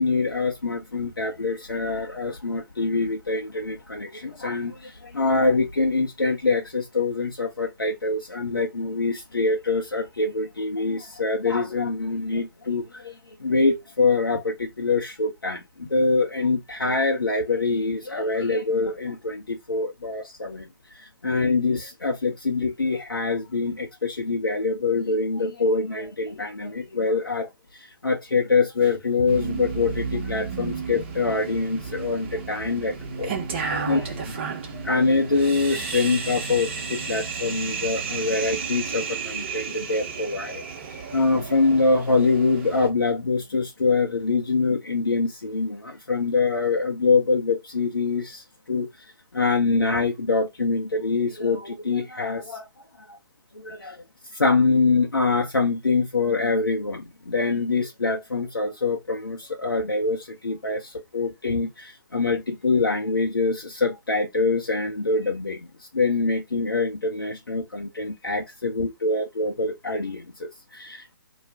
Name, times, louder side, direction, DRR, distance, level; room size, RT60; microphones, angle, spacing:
voice 1, 0.0-40.6 41.1-49.1 49.3-52.7 53.1-53.2 53.5-54.0 54.3-71.1, left 3 dB, 75° left, 0.6 m, -25 dB
sound 1, 29.3-42.9, right 5 dB, 30° right, 0.7 m, -32 dB
2.4 x 2.1 x 3.4 m
figure-of-eight pair, 135°, 12 cm